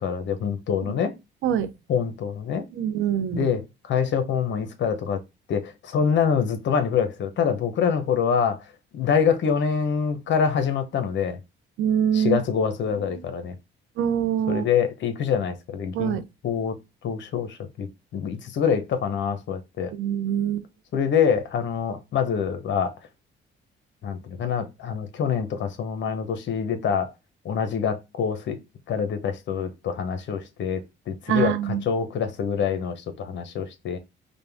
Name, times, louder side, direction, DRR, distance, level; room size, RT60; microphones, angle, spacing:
voice 1, 0.0-1.1 1.9-2.7 3.3-5.2 5.5-8.6 8.9-11.4 12.1-13.5 14.5-16.8 17.0-19.9 20.9-22.9 24.0-27.1 27.4-28.6 28.9-30.8 31.1-34.0, left 7 dB, 65° left, 0.9 m, -25 dB
voice 2, 2.7-3.5 11.8-12.4 14.0-14.7 15.9-16.2 19.9-20.7 31.3-31.8, right 9 dB, 80° right, 0.6 m, -24 dB
5.1 x 2.3 x 3.4 m
cardioid pair, 90°, 20 cm